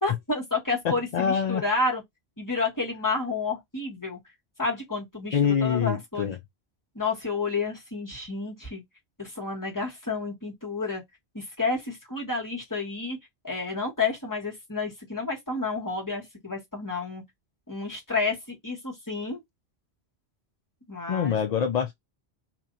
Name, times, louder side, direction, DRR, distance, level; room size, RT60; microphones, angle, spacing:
voice 1, 0.0-2.0 2.4-4.2 4.6-6.3 6.9-8.8 9.2-11.0 11.3-13.2 13.4-17.2 17.7-19.4 20.9-21.4, left 3 dB, 15° left, 1.6 m, -30 dB
voice 2, 0.8-1.6 5.3-6.4 21.1-21.9, left 7 dB, 55° left, 0.5 m, -25 dB
2.9 x 2.8 x 3.9 m
omnidirectional pair, 1.1 m